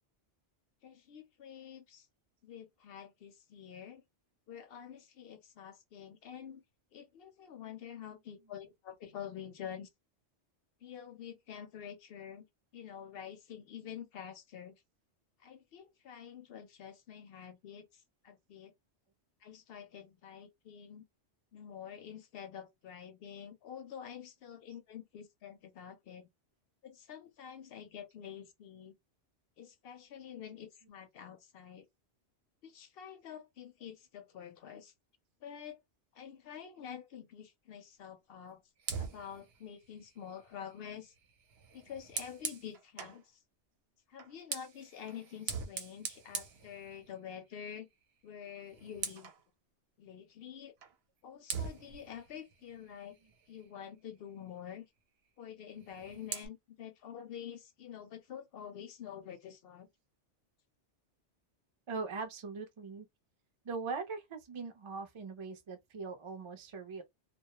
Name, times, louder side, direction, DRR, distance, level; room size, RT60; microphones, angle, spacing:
voice 1, 0.8-2.1 2.4-4.0 4.5-6.6 6.9-9.9 10.8-12.5 12.7-14.8 15.4-18.7 19.4-21.0 21.5-26.3 26.8-28.9 29.6-31.9 32.6-34.9 35.4-35.8 36.1-38.6 39.0-41.1 41.7-43.2 44.1-47.9 48.2-49.3 50.0-50.7 51.2-53.2 53.5-54.9 55.4-59.9, left 8 dB, 65° left, 0.7 m, -48 dB
Fire, 38.8-43.2 44.1-47.4 47.7-48.0 48.3-49.4 50.8-50.9 51.5-53.8 55.7-56.5, right 6 dB, 65° right, 0.8 m, -43 dB
voice 2, 61.9-63.1 63.6-67.0, right 4 dB, 40° right, 0.4 m, -41 dB
2.2 x 2.0 x 2.8 m
omnidirectional pair, 1.2 m